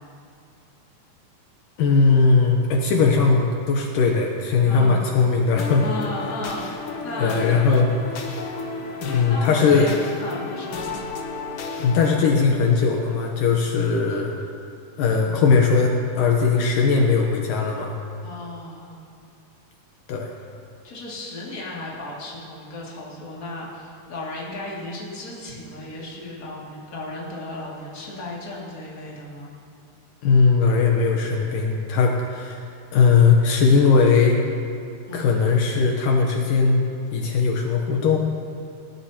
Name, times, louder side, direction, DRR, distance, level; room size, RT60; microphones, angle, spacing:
voice 1, 1.8-5.8 7.2-8.2 9.0-9.9 11.8-14.3 15.0-17.9 20.1-20.3 30.2-32.6 32.9-34.4 35.1-38.2, left 4 dB, 75° left, 1 dB, 2.5 m, -19 dB
voice 2, 4.7-5.1 5.8-7.4 9.3-10.9 18.2-19.0 20.8-29.5 35.1-35.3, left 2 dB, 25° left, -5 dB, 2.5 m, -34 dB
sound 1, 5.6-12.4, left 3 dB, 90° left, 1.1 m, -33 dB
20.0 x 16.0 x 2.9 m, 2.4 s
omnidirectional pair, 4.0 m